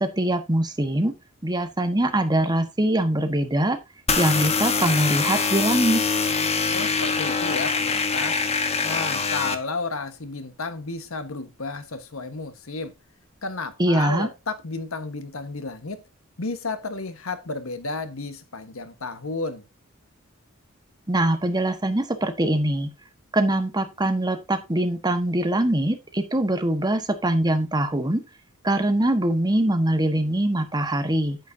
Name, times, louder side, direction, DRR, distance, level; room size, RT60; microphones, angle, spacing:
voice 1, 0.0-1.1 1.4-3.8 4.2-6.0 13.8-14.3 21.1-22.9 23.3-28.2 28.6-31.4, right 1 dB, 20° right, 1.3 m, -23 dB
sound 1, 4.1-9.6, left 5 dB, 30° left, 1.2 m, -24 dB
voice 2, 6.7-8.4 8.8-12.9 13.4-16.1 16.4-19.7, left 3 dB, 80° left, 1.4 m, -32 dB
9.3 x 9.2 x 2.7 m
head